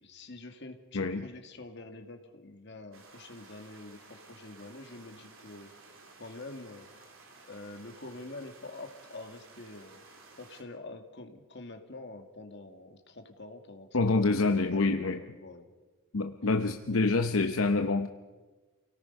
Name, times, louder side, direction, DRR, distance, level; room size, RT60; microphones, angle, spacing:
voice 1, 0.0-5.7 6.2-6.9 7.5-10.0 10.4-13.9 14.1-15.7, left 2 dB, 55° left, 5 dB, 1.9 m, -46 dB
voice 2, 0.9-1.2 13.9-15.2 16.1-18.1, left 3 dB, 75° left, 7 dB, 0.8 m, -26 dB
sound 1, 2.9-10.6, right 3 dB, 70° right, 3.3 m, -55 dB
28.5 x 18.0 x 5.4 m, 1.3 s
head